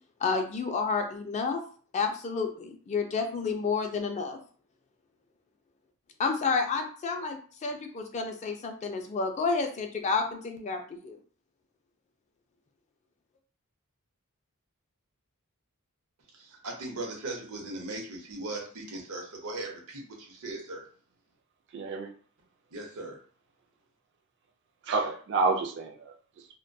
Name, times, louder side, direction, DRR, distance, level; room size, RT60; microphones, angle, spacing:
voice 1, 0.2-1.6 1.9-4.4 6.2-11.2, left 4 dB, 30° left, 5 dB, 0.3 m, -30 dB
voice 2, 16.3-20.8 22.7-23.2, right 2 dB, 80° right, 0 dB, 0.8 m, -38 dB
voice 3, 21.7-22.2 24.8-26.5, right 3 dB, 55° right, 2 dB, 0.4 m, -29 dB
2.2 x 2.1 x 2.6 m, 0.44 s
head